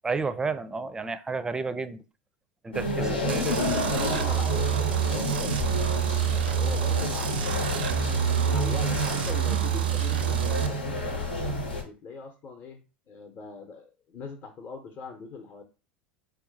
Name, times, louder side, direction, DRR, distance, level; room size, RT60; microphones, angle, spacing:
voice 1, 0.0-2.0 2.6-3.6, right 4 dB, 15° right, 0.5 m, -31 dB
sound 1, 2.7-11.8, left 1 dB, 85° left, 1.0 m, -29 dB
voice 2, 2.9-5.6 6.3-8.2 8.5-11.3 11.8-15.6, left 5 dB, 40° left, 0.9 m, -40 dB
sound 2, 3.3-10.7, right 12 dB, 75° right, 0.5 m, -28 dB
4.6 x 2.2 x 4.0 m
figure-of-eight pair, 80°, 5 cm